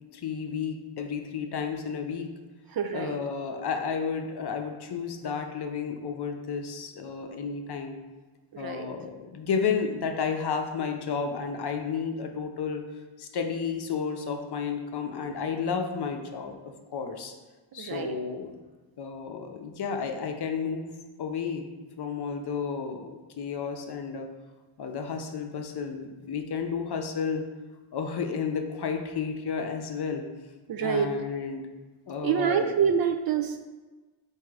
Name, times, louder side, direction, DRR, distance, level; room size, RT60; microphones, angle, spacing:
voice 1, 0.1-2.3 2.9-8.0 8.6-12.8 13.2-17.3 17.7-18.5 19.0-20.9 21.2-21.7 22.0-23.1 23.4-24.3 24.8-27.4 27.9-30.2 30.8-31.6 32.1-32.7, left 6 dB, 50° left, 4 dB, 0.6 m, -32 dB
voice 2, 2.7-3.2 8.5-8.9 17.7-18.2 30.7-31.1 32.2-33.6, right 7 dB, 50° right, 6 dB, 0.4 m, -27 dB
3.6 x 2.7 x 4.7 m, 1.2 s
cardioid pair, 55°, 50 cm